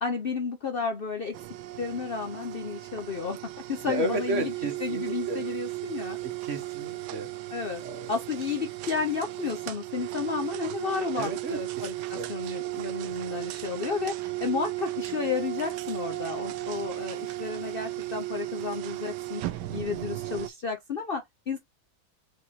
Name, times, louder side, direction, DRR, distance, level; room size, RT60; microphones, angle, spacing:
voice 1, 0.0-1.3 1.8-4.5 4.8-6.2 7.5-7.8 8.1-19.4 19.7-21.6, left 5 dB, 60° left, 0.5 m, -32 dB
sound 1, 1.3-20.5, right 17 dB, 75° right, 1.1 m, -35 dB
voice 2, 3.8-5.4 6.2-7.3 7.8-8.1 11.2-11.6 12.0-12.3 16.7-16.9 19.6-19.8, right 2 dB, 45° right, 1.1 m, -33 dB
4.8 x 3.6 x 2.9 m
omnidirectional pair, 2.1 m